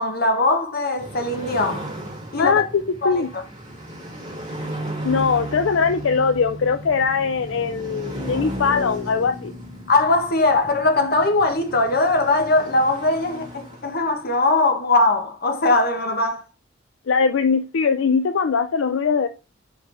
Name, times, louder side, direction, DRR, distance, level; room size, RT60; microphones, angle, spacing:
voice 1, 0.0-1.9 2.3-2.6 3.0-3.4 9.9-16.4, left 2 dB, 50° left, 1.3 m, -20 dB
sound 1, 1.0-14.4, equal, 20° right, 2.9 m, -35 dB
voice 2, 2.4-3.3 5.0-9.5 17.1-19.3, left 5 dB, 75° left, 0.5 m, -21 dB
5.0 x 4.9 x 4.5 m
head